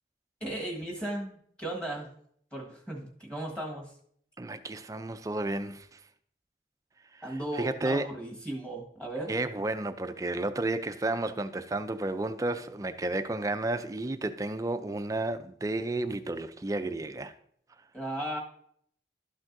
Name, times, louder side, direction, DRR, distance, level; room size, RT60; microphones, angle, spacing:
voice 1, 0.4-2.1 2.5-3.9 7.2-9.3 17.9-18.4, right 1 dB, 5° left, 1.4 m, -36 dB
voice 2, 4.4-6.0 7.1-7.2 7.6-8.1 9.3-17.3, right 2 dB, 20° right, 0.4 m, -32 dB
12.0 x 6.0 x 2.6 m
head